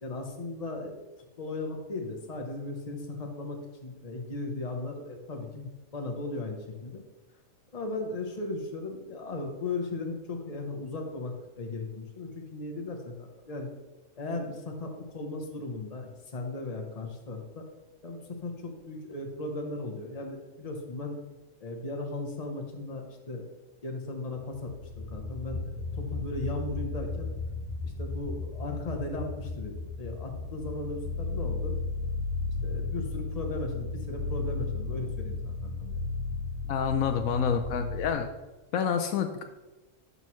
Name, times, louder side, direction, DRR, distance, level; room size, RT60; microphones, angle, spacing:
voice 1, 0.0-1.0 1.4-7.0 7.7-13.7 14.2-17.6 18.0-21.2 21.6-23.4 23.8-27.3 27.8-31.7 32.5-36.0, left 2 dB, 30° left, 3 dB, 1.1 m, -37 dB
sound 1, 24.7-38.1, left 3 dB, 80° right, 3.1 m, -35 dB
voice 2, 36.6-38.3 38.7-39.4, left 7 dB, 75° left, 6 dB, 1.1 m, -28 dB
11.5 x 5.5 x 3.2 m, 1.1 s
omnidirectional pair, 1.5 m